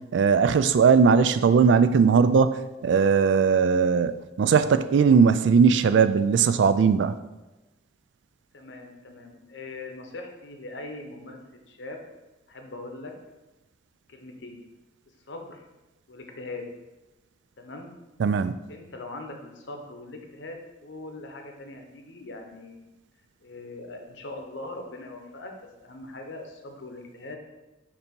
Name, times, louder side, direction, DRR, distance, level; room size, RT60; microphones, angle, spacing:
voice 1, 0.1-2.6 2.8-7.1 18.2-18.5, right 6 dB, 70° right, 12 dB, 0.3 m, -19 dB
voice 2, 8.5-12.0 12.5-13.1 14.1-14.6 15.3-15.6 16.1-16.7 17.6-17.9 18.7-22.9 23.4-27.4, left 2 dB, 70° left, 3 dB, 0.9 m, -41 dB
6.7 x 2.8 x 5.2 m, 1.1 s
head